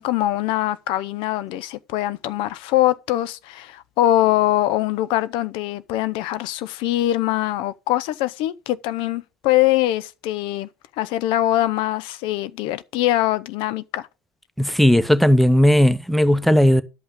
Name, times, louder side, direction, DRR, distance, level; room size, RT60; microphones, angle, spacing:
voice 1, 0.0-10.7 11.0-14.1, left 14 dB, 60° left, 0.6 m, -22 dB
voice 2, 14.6-16.8, equal, ahead, 0.8 m, -16 dB
11.5 x 5.5 x 5.2 m
hypercardioid pair, 95°, 10 cm